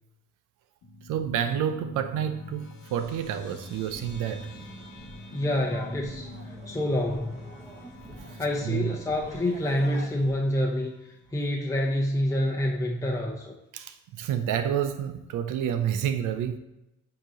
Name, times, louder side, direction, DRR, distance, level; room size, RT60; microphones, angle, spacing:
sound 1, 0.8-11.6, left 1 dB, 80° left, 1.1 m, -47 dB
voice 1, 1.0-4.5 8.3-9.0 13.7-16.6, right 9 dB, 90° right, 8 dB, 0.7 m, -29 dB
sound 2, 3.0-10.3, right 1 dB, 25° right, 1.4 m, -46 dB
voice 2, 5.3-6.3 6.7-7.5 8.4-10.9 11.3-13.5, left 1 dB, 10° left, -2 dB, 0.7 m, -27 dB
7.9 x 2.9 x 5.0 m, 0.91 s
cardioid pair, 90°, 30 cm